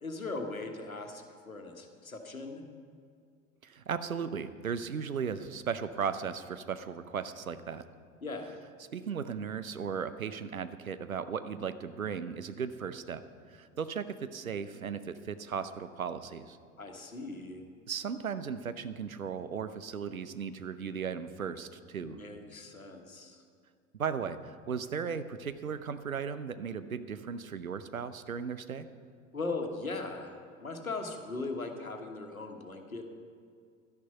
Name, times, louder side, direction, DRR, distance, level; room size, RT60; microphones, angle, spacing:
voice 1, 0.0-2.6 8.2-8.6 16.8-17.6 22.0-23.4 29.3-33.1, left 3 dB, 90° left, 4 dB, 1.3 m, -39 dB
voice 2, 3.6-7.8 8.9-16.6 17.9-22.2 24.0-28.9, right 6 dB, 85° right, 12 dB, 0.7 m, -36 dB
12.0 x 10.5 x 5.7 m, 2.3 s
figure-of-eight pair, 80°, 41 cm